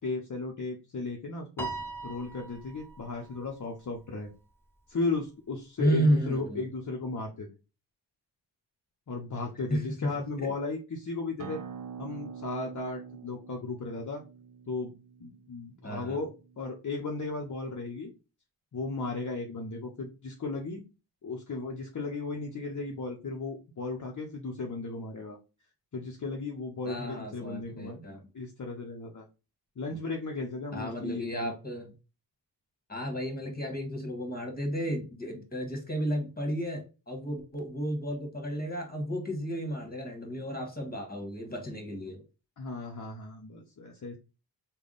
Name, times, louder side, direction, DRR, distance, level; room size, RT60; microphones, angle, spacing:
voice 1, 0.0-1.7 2.0-4.3 4.9-7.5 9.1-11.6 12.0-14.2 14.7-14.9 15.2-16.3 16.6-18.1 18.7-20.8 21.2-25.4 25.9-28.0 28.3-29.3 29.8-31.6 42.6-44.2, left 3 dB, 45° left, 1 dB, 0.7 m, -35 dB
Piano, 1.6-4.1, right 3 dB, 5° left, 0.8 m, -41 dB
voice 2, 5.8-6.6 9.7-10.1 10.4-10.5 15.8-16.2 26.8-28.3 30.7-31.9 32.9-42.2, equal, 20° left, 3 dB, 1.4 m, -32 dB
Acoustic guitar, 11.4-16.6, right 6 dB, 50° right, 0.5 m, -45 dB
3.4 x 2.3 x 3.9 m, 0.30 s
cardioid pair, 60°, 43 cm